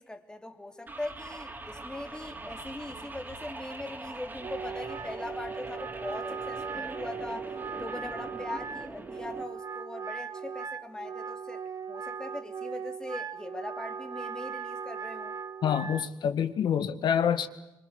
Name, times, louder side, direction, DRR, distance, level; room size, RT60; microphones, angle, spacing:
voice 1, 0.0-7.5 7.8-11.6 11.9-15.4, left 2 dB, 10° left, 2.7 m, -41 dB
sound 1, 0.9-9.4, right 2 dB, 20° right, 3.7 m, -42 dB
Wind instrument woodwind instrument, 4.4-16.1, right 6 dB, 45° right, 1.3 m, -38 dB
voice 2, 15.6-17.5, left 8 dB, 70° left, 2.0 m, -27 dB
26.5 x 26.0 x 8.3 m
cardioid pair, 130°, 8 cm